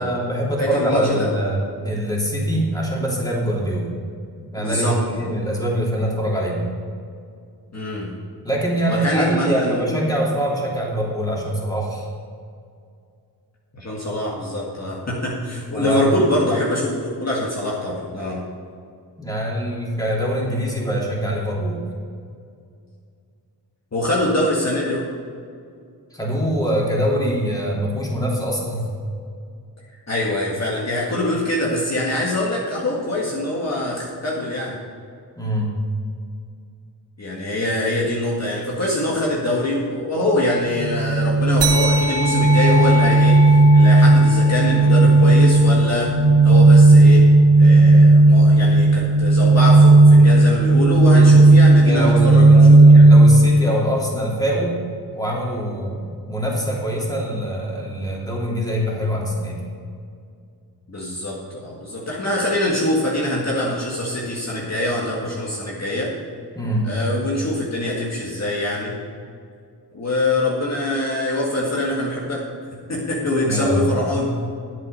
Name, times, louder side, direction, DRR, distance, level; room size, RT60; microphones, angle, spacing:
voice 1, 0.0-3.9 4.5-6.7 8.4-12.1 15.7-16.1 19.2-21.8 26.1-28.8 35.4-35.7 51.1-51.3 51.8-54.7 55.1-59.6 66.5-66.9 73.4-74.4, equal, 10° left, -4 dB, 3.1 m, -24 dB
voice 2, 0.6-1.3 4.6-5.3 7.7-8.1 8.8-9.9 13.7-18.4 23.9-25.1 30.1-34.8 37.2-46.1 46.4-47.3 47.6-53.1 60.9-66.1 66.8-69.0 69.9-72.5 72.9-74.4, left 1 dB, 40° left, -5 dB, 2.0 m, -24 dB
sound 1, 40.7-53.5, right 2 dB, 20° right, 2.4 m, -12 dB
sound 2, 41.6-46.5, left 3 dB, 80° right, 1.9 m, -26 dB
11.5 x 8.1 x 5.5 m, 2.3 s
wide cardioid pair, 90°, 41 cm